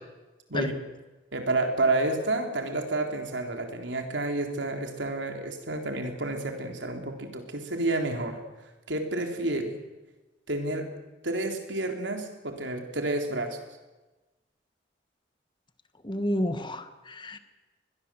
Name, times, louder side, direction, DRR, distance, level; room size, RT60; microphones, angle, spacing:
voice 1, 0.5-0.8 1.3-8.4 8.9-9.8 10.5-10.9 11.2-13.6, right 2 dB, 85° right, 4 dB, 3.8 m, -30 dB
voice 2, 16.0-17.4, left 1 dB, 25° left, 9 dB, 1.5 m, -30 dB
23.5 x 20.5 x 7.7 m, 1.1 s
head